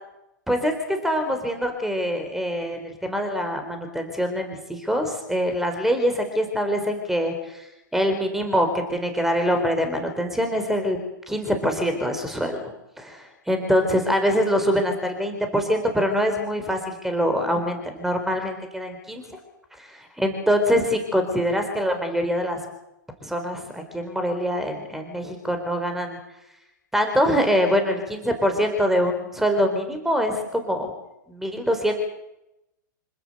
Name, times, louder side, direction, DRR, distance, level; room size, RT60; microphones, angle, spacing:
voice 1, 0.5-7.6 7.9-11.0 11.3-12.7 13.0-19.2 19.8-22.6 23.2-26.2 26.9-30.9 31.3-31.9, equal, 5° right, 6 dB, 4.0 m, -24 dB
26.0 x 16.0 x 7.9 m, 0.89 s
figure-of-eight pair, 105°, 11 cm